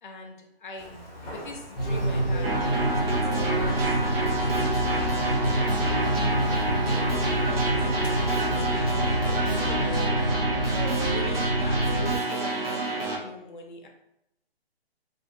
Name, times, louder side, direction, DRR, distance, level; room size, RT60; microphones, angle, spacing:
voice 1, 0.0-0.9 1.3-5.6 5.8-6.4 6.8-13.9, left 2 dB, 50° left, 2 dB, 0.6 m, -42 dB
Walk footsteps, 0.8-8.5, equal, 15° left, 0.7 m, -42 dB
sound 1, 1.8-12.2, right 1 dB, ahead, 0.3 m, -27 dB
sound 2, 2.4-13.2, right 2 dB, 60° right, 0.9 m, -28 dB
2.6 x 2.5 x 2.7 m, 0.82 s
hypercardioid pair, 160°, 32 cm